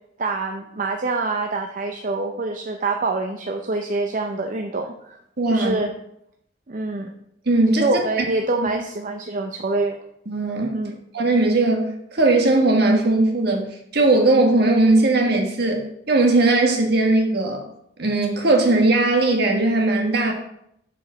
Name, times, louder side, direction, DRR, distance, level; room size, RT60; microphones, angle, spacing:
voice 1, 0.2-5.2 5.5-5.9 6.7-7.1 7.8-10.0 10.7-10.9, right 3 dB, 45° right, 4 dB, 0.6 m, -25 dB
voice 2, 5.4-5.8 7.4-7.9 10.3-10.8 11.1-13.6 13.9-17.6 18.0-20.3, right 2 dB, 60° right, 2 dB, 1.5 m, -18 dB
6.9 x 5.0 x 5.6 m, 0.75 s
head